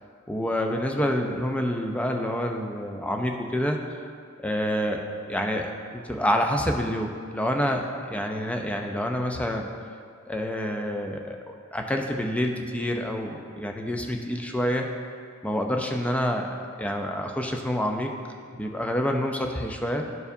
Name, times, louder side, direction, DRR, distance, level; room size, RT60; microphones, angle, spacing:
voice 1, 0.3-3.8 4.4-9.7 10.3-14.9 15.4-16.5 16.8-18.1 18.5-20.1, equal, 5° left, 2 dB, 0.5 m, -27 dB
12.0 x 4.7 x 2.7 m, 2.2 s
head